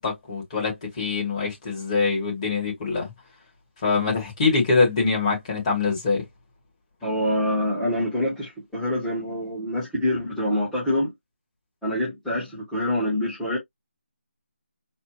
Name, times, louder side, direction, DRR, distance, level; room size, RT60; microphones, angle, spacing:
voice 1, 0.0-3.1 3.8-6.2, left 4 dB, 30° left, 2.3 m, -24 dB
voice 2, 7.0-11.1 11.8-13.6, left 1 dB, ahead, 1.3 m, -26 dB
4.2 x 2.4 x 3.0 m
figure-of-eight pair, 165°, 7 cm